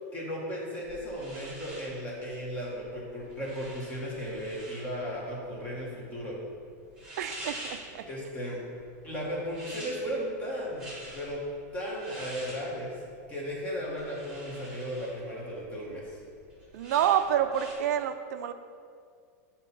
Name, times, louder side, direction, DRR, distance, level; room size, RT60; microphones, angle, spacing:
voice 1, 0.1-6.4 8.1-8.6 9.0-11.4 11.7-12.9 13.3-16.2, equal, 15° left, -4 dB, 1.1 m, -35 dB
sound 1, 0.9-17.7, right 1 dB, 5° right, 1.5 m, -47 dB
voice 2, 7.2-8.0 16.7-18.5, right 10 dB, 80° right, 9 dB, 0.4 m, -28 dB
7.5 x 2.9 x 5.4 m, 2.2 s
supercardioid pair, 175°, 9 cm